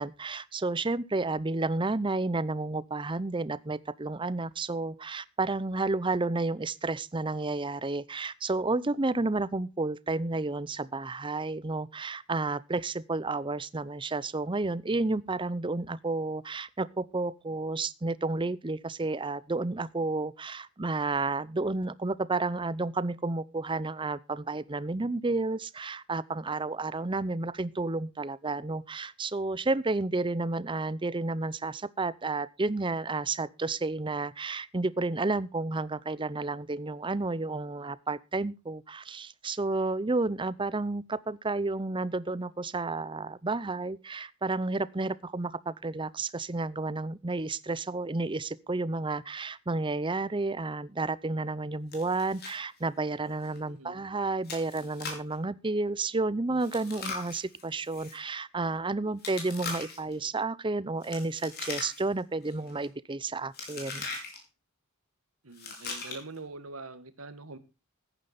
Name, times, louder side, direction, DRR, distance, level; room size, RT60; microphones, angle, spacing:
voice 1, 0.0-64.1, right 3 dB, 25° right, 0.6 m, -31 dB
Chewing mastication, 51.9-52.6 52.8-52.9 53.4-53.6 54.4-55.3 56.6-58.2 59.2-60.1 61.0-62.2 62.5-62.9 63.5-64.4 65.5-66.4, left 4 dB, 50° left, 5.3 m, -40 dB
voice 2, 53.6-54.0 65.4-67.6, right 3 dB, 90° right, 1.7 m, -44 dB
15.0 x 10.0 x 4.1 m
head